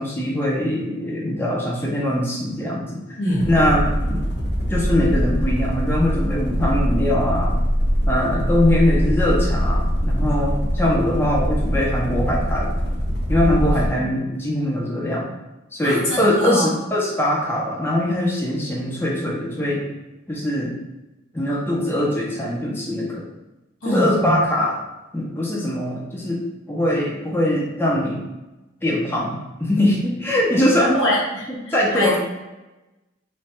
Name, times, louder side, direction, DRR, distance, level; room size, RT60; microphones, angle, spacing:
voice 1, 0.0-3.0 3.5-4.2 4.7-7.5 8.1-12.7 13.3-15.3 15.7-19.9 20.3-20.7 21.3-23.3 23.8-24.8 25.1-28.2 28.8-31.0 31.5-32.2, left 1 dB, 10° left, -4 dB, 0.5 m, -22 dB
voice 2, 3.2-3.5 13.7-13.8 15.8-16.7 23.8-24.1 30.9-32.2, equal, 90° left, -5 dB, 1.3 m, -24 dB
sound 1, 3.3-13.9, equal, 60° left, 0.9 m, -22 dB
3.2 x 2.3 x 4.1 m, 1.0 s
head